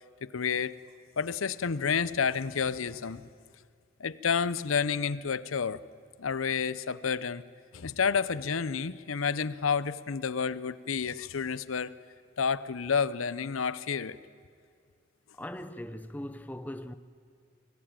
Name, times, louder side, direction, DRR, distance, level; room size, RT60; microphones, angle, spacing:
voice 1, 0.2-0.8 1.2-3.3 4.0-5.8 6.2-7.4 7.7-11.9 12.4-14.2, left 6 dB, 85° left, 0.7 m, -30 dB
voice 2, 15.4-16.9, left 1 dB, 10° left, 0.7 m, -39 dB
25.0 x 18.5 x 8.9 m
head